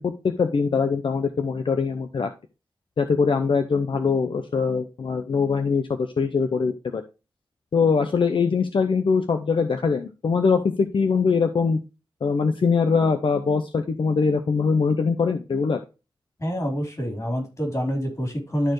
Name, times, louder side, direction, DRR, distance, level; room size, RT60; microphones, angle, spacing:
voice 1, 0.0-2.3 3.0-7.0 7.7-11.8 12.2-15.8, left 5 dB, 75° left, 7 dB, 0.7 m, -22 dB
voice 2, 16.4-18.7, equal, 35° left, 2 dB, 3.8 m, -27 dB
12.5 x 4.4 x 3.1 m, 0.29 s
wide cardioid pair, 105°, 9 cm